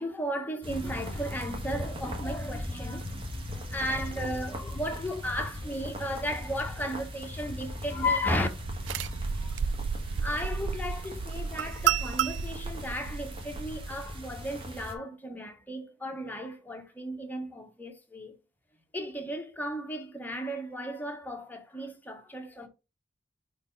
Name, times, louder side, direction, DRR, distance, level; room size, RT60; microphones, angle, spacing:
voice 1, 0.0-8.5 9.4-9.5 10.2-18.4 18.9-22.7, equal, 10° left, 1.1 m, -35 dB
sound 1, 0.6-14.9, left 1 dB, 30° right, 1.5 m, -39 dB
sound 2, 8.6-14.0, right 7 dB, 80° right, 0.3 m, -32 dB
4.9 x 4.4 x 5.2 m
head